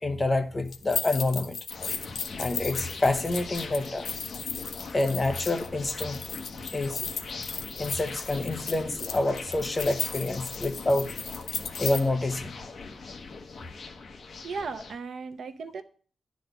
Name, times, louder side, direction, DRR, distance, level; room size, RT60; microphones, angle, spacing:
voice 1, 0.0-1.6 2.4-4.1 4.9-6.2 6.7-7.1 7.8-11.1 11.8-12.5, left 2 dB, 20° left, 7 dB, 0.7 m, -27 dB
sound 1, 0.7-12.0, left 6 dB, 85° left, 1.0 m, -36 dB
sound 2, 1.7-15.0, left 4 dB, 50° left, 1.1 m, -41 dB
voice 2, 14.4-15.8, right 4 dB, 65° right, 8 dB, 0.7 m, -36 dB
10.5 x 4.2 x 7.8 m, 0.43 s
wide cardioid pair, 180°, 0 cm